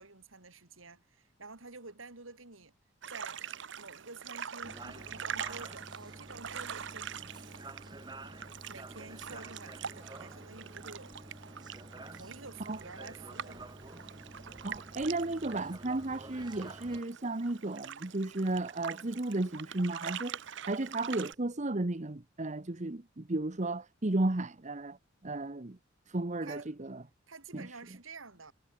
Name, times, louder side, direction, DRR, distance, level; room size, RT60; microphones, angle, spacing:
voice 1, 0.0-2.7 3.1-3.4 3.8-7.6 8.7-11.1 12.1-13.8 26.4-26.7 27.3-28.5, right 3 dB, 80° right, 3.5 m, -50 dB
sound 1, 3.0-21.3, right 8 dB, 65° right, 1.1 m, -44 dB
sound 2, 4.6-17.0, right 2 dB, 20° right, 2.1 m, -49 dB
voice 2, 14.6-20.4 20.7-25.0 25.2-25.8 26.1-27.0 27.5-27.7, right 2 dB, 35° right, 1.1 m, -34 dB
head